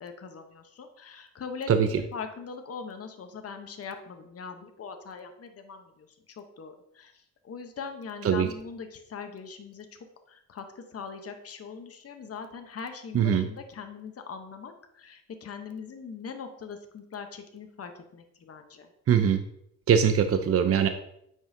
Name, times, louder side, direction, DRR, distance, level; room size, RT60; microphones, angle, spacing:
voice 1, 0.0-6.1 6.4-7.1 7.4-9.9 10.3-18.9, left 5 dB, 50° left, 6 dB, 0.9 m, -41 dB
voice 2, 1.7-2.0 8.2-8.5 13.1-13.5 19.1-19.4 19.9-20.9, right 8 dB, 50° right, 8 dB, 0.6 m, -22 dB
8.6 x 5.5 x 2.7 m, 0.75 s
cardioid pair, 85°, 31 cm